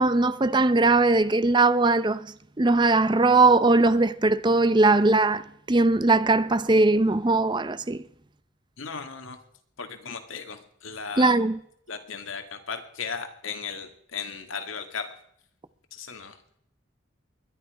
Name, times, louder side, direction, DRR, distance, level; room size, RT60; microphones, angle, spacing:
voice 1, 0.0-8.0 11.2-11.6, right 3 dB, 20° right, 0.6 m, -20 dB
voice 2, 8.8-9.4 9.8-11.4 11.9-15.2 15.9-16.4, left 5 dB, 80° left, 2.1 m, -36 dB
21.0 x 11.5 x 4.9 m
head